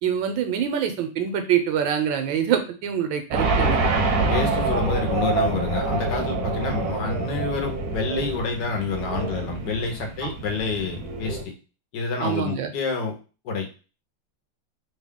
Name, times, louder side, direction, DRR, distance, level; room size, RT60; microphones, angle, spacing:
voice 1, 0.0-3.8 10.2-10.3 12.2-12.7, right 9 dB, 85° right, 6 dB, 1.4 m, -25 dB
sound 1, 3.3-11.4, right 3 dB, 65° right, 1.0 m, -26 dB
voice 2, 4.3-11.5 11.9-13.2 13.4-13.7, left 4 dB, 70° left, 3 dB, 1.5 m, -28 dB
3.7 x 2.3 x 3.5 m, 0.33 s
omnidirectional pair, 2.0 m